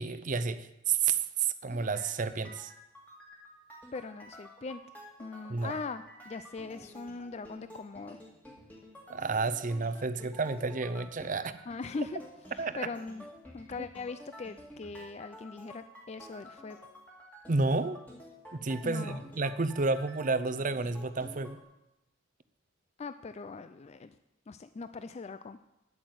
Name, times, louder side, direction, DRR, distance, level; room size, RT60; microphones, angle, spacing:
voice 1, 0.0-2.7 5.5-5.7 9.1-11.5 12.6-12.9 13.8-13.9 17.5-18.0 18.5-21.6, right 4 dB, 40° right, 13 dB, 0.6 m, -31 dB
sound 1, 1.7-21.6, equal, 10° left, 2.1 m, -51 dB
voice 2, 3.9-4.8 5.2-8.2 11.7-12.2 12.5-13.3 13.5-16.8 18.8-19.2 23.0-24.1 24.5-25.6, left 4 dB, 35° left, 11 dB, 0.4 m, -40 dB
9.8 x 8.7 x 7.7 m, 0.92 s
head